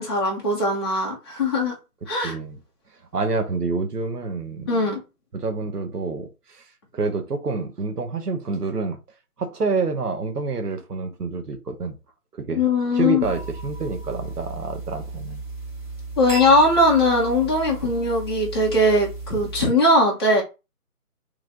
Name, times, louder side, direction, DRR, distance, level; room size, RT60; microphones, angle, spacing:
voice 1, 0.0-1.7 2.1-2.3 4.7-5.0 12.5-13.2 16.2-20.4, left 1 dB, 15° left, 1.0 m, -20 dB
voice 2, 2.2-2.6 3.1-4.7 5.3-9.0 9.4-12.0 12.3-12.7 12.9-15.4, right 4 dB, 85° right, 1.1 m, -27 dB
sound 1, 13.2-19.7, right 2 dB, 10° right, 2.6 m, -34 dB
3.9 x 3.2 x 3.8 m
figure-of-eight pair, 160°, 46 cm